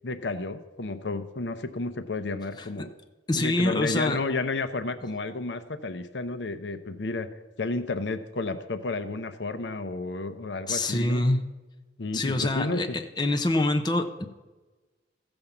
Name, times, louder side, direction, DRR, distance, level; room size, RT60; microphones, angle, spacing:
voice 1, 0.0-2.9 3.3-7.3 7.6-11.2 12.0-13.0, left 3 dB, 85° left, 10 dB, 0.7 m, -31 dB
voice 2, 3.3-4.2 10.7-11.4 12.1-14.3, left 2 dB, 25° left, 5 dB, 0.8 m, -25 dB
15.0 x 5.3 x 7.1 m, 1.2 s
head